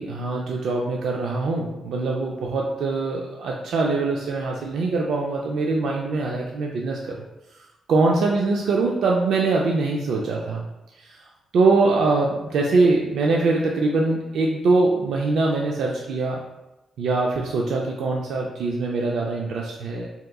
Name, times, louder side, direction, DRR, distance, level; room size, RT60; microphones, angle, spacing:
voice 1, 0.0-7.2 7.9-10.6 11.0-11.2 11.5-16.4 17.0-20.1, right 3 dB, 80° right, -1 dB, 0.3 m, -23 dB
3.5 x 2.8 x 2.3 m, 0.98 s
cardioid pair, 90°, 0 cm